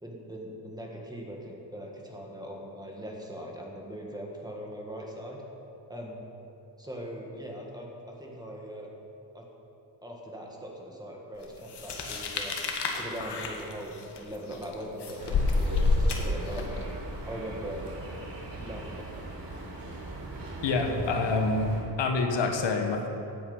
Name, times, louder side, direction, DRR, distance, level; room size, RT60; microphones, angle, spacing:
voice 1, 0.0-5.4 5.9-6.2 6.8-8.9 9.3-9.5 10.0-12.5 12.9-16.9 17.2-17.9 18.5-19.1, equal, 10° right, -1 dB, 1.8 m, -40 dB
sound 1, 11.7-16.8, left 3 dB, 70° left, 1.8 m, -29 dB
sound 2, 15.2-21.8, right 2 dB, 75° right, 3.7 m, -40 dB
voice 2, 20.6-21.7 22.0-23.1, left 3 dB, 85° left, 3 dB, 1.5 m, -27 dB
16.5 x 8.9 x 5.7 m, 3.0 s
wide cardioid pair, 170°, 42 cm